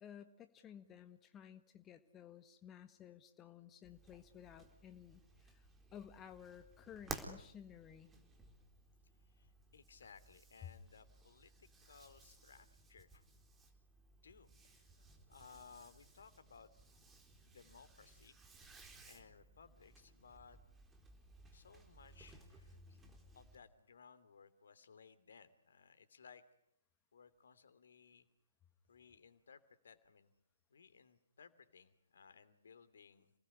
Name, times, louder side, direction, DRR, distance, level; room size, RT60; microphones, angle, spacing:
voice 1, 0.0-5.7 5.9-8.1, left 9 dB, 15° left, 9 dB, 1.5 m, -55 dB
sound 1, 3.8-23.6, right 3 dB, 10° right, 4.0 m, -57 dB
voice 2, 9.0-13.3 14.2-16.7 17.4-18.4 19.0-20.6 21.5-23.0 23.3-26.4 27.1-28.3 28.9-30.3 30.7-33.3, left 6 dB, 60° left, 13 dB, 2.9 m, -61 dB
29.5 x 19.5 x 9.8 m, 0.75 s
figure-of-eight pair, 130°, 0 cm